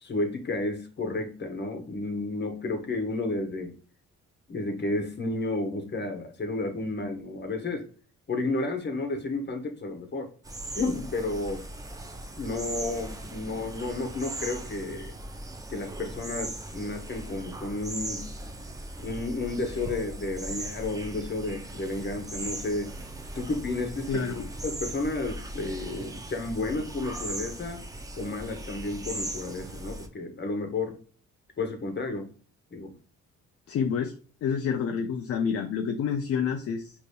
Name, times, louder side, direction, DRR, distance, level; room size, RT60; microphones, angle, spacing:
voice 1, 0.0-3.7 4.5-7.9 8.3-10.3 10.7-11.7 12.4-15.2 15.7-18.2 19.0-22.9 23.3-24.2 24.6-27.8 28.2-30.9 31.6-32.3 32.7-32.9, left 2 dB, 35° left, 4 dB, 1.0 m, -32 dB
sound 1, 10.4-30.1, right 1 dB, 10° right, 0.4 m, -39 dB
voice 2, 24.1-24.5 33.7-34.1 34.4-36.9, left 6 dB, 50° left, 5 dB, 0.5 m, -28 dB
5.0 x 2.6 x 2.2 m, 0.41 s
cardioid pair, 90°, 30 cm